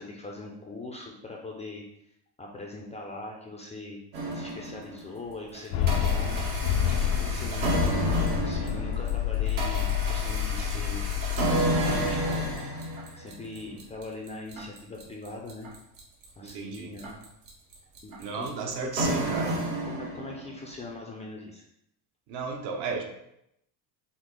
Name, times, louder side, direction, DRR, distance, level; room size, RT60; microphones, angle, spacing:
voice 1, 0.0-1.8 2.4-4.0 4.3-6.5 7.2-11.1 11.5-12.6 13.2-15.8 16.4-17.2 18.0-19.2 19.6-21.6, left 2 dB, 15° left, -1 dB, 0.4 m, -41 dB
sound 1, 4.1-5.1 5.5-20.6, right 1 dB, 85° right, 1.6 m, -31 dB
sound 2, 5.7-12.6, left 9 dB, 85° left, 0.6 m, -28 dB
voice 2, 16.4-16.9 18.2-19.5 22.3-23.0, right 4 dB, 60° right, 3 dB, 1.0 m, -33 dB
6.0 x 2.1 x 3.7 m, 0.79 s
cardioid pair, 125°, 47 cm